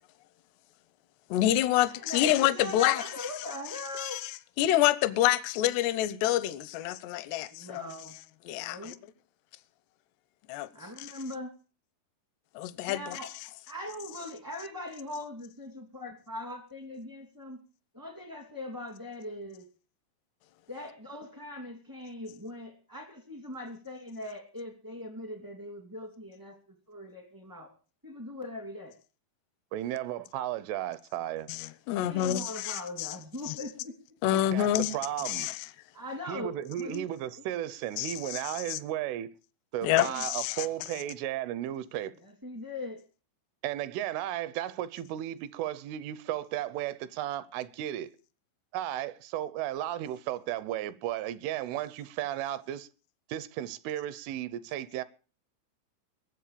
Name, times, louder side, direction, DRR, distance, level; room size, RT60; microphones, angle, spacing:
voice 1, 1.3-3.0 4.0-4.3 4.6-7.9 8.5-8.9 10.5-10.7 12.6-13.2 31.5-33.1 34.2-35.0 35.3-35.7 38.0-38.4 38.7-38.8 39.8-40.7, left 13 dB, 80° left, 2.4 m, -27 dB
voice 2, 1.9-4.2 7.4-8.2 8.5-9.0 10.7-11.5 12.9-13.3 13.7-17.6 17.9-19.7 20.7-27.7 28.0-29.0 31.9-33.9 35.2-35.3 35.9-37.1 37.4-37.5 39.9-40.2 42.2-43.0, left 1 dB, 25° right, 0.4 m, -41 dB
voice 3, 29.7-31.5 34.5-35.5 36.3-39.3 39.7-42.1 43.6-48.1 48.7-52.9 53.3-55.0, right 12 dB, 80° right, 3.2 m, -34 dB
21.5 x 7.7 x 6.8 m
omnidirectional pair, 5.9 m